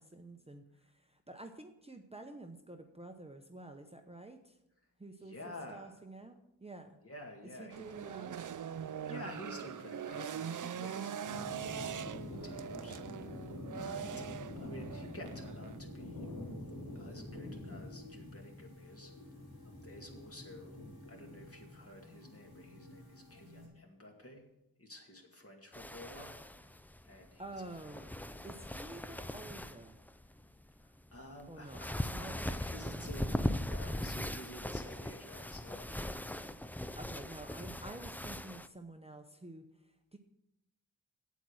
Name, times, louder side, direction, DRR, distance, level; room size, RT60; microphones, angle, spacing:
voice 1, 0.0-4.6 5.0-7.0 7.4-8.4 27.4-28.1 28.4-30.0 31.5-32.5 32.9-33.5 37.0-40.2, right 2 dB, 15° right, 5 dB, 0.8 m, -50 dB
voice 2, 5.2-6.0 7.0-7.9 9.1-14.1 14.6-16.4 16.9-19.1 19.6-20.8 21.1-24.5 24.8-27.4 28.4-28.6 30.8-36.6, left 1 dB, 40° left, 2 dB, 2.1 m, -51 dB
sound 1, 7.7-15.8, right 8 dB, 60° right, 0.5 m, -42 dB
sound 2, 11.2-23.7, left 1 dB, 90° left, 4.2 m, -47 dB
sound 3, 25.7-38.7, left 1 dB, 5° left, 0.4 m, -40 dB
8.5 x 8.3 x 6.2 m, 0.85 s
wide cardioid pair, 80°, 36 cm